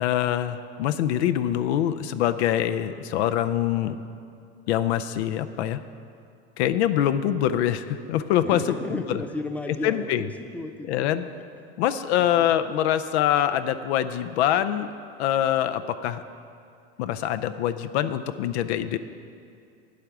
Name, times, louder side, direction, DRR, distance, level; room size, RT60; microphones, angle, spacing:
voice 1, 0.0-4.0 4.7-5.8 6.6-8.6 8.9-9.2 9.8-10.2 10.9-11.2 11.8-14.9 15.2-16.2 17.0-19.0, left 11 dB, 85° left, 10 dB, 0.5 m, -24 dB
voice 2, 8.4-11.1 11.6-11.7 12.2-12.5, left 2 dB, 5° left, 5 dB, 0.7 m, -34 dB
9.1 x 8.4 x 5.9 m, 2.4 s
supercardioid pair, 100°, 32 cm